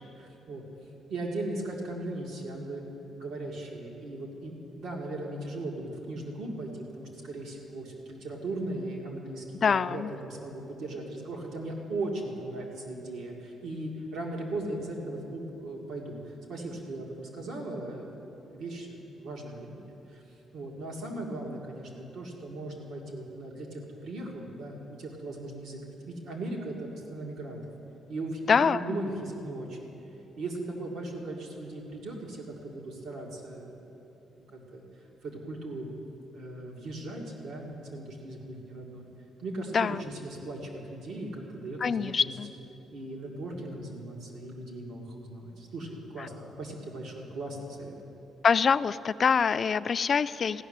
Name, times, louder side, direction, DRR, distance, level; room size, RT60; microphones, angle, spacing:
voice 1, 0.2-0.6 1.1-20.2 20.5-25.8 26.1-27.6 28.1-29.8 30.4-33.9 34.5-34.8 35.2-35.9 36.3-39.1 39.4-42.3 42.9-46.3 46.6-48.0, right 2 dB, 80° right, -1 dB, 2.1 m, -38 dB
voice 2, 9.6-10.1 28.5-28.9 39.7-40.0 41.8-42.5 48.4-50.6, left 6 dB, 40° left, 14 dB, 0.3 m, -25 dB
15.5 x 6.6 x 10.0 m, 3.0 s
cardioid pair, 125°, 0 cm